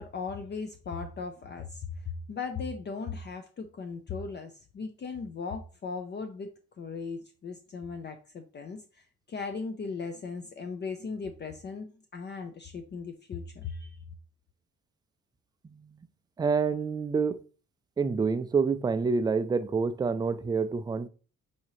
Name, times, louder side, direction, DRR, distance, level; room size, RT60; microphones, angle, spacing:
voice 1, 0.0-14.0, left 5 dB, 35° left, 0.5 m, -38 dB
voice 2, 15.6-16.0 16.4-17.4 18.0-21.1, right 5 dB, 15° right, 0.3 m, -27 dB
6.0 x 2.8 x 3.0 m
cardioid pair, 90°, 30 cm